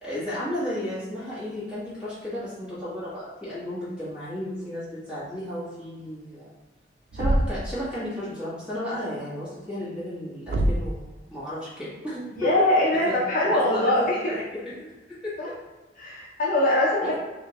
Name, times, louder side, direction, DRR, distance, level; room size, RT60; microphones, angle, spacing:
voice 1, 0.0-6.5 7.1-12.7 13.0-15.3 17.0-17.1, left 1 dB, 5° right, -11 dB, 1.5 m, -33 dB
Thump thud, 7.1-7.8 10.5-11.0, right 1 dB, 70° right, 0.3 m, -24 dB
voice 2, 12.3-14.3 15.4-15.5 16.0-17.1, left 1 dB, 50° left, -4 dB, 0.6 m, -22 dB
3.3 x 2.8 x 2.9 m, 1.2 s
head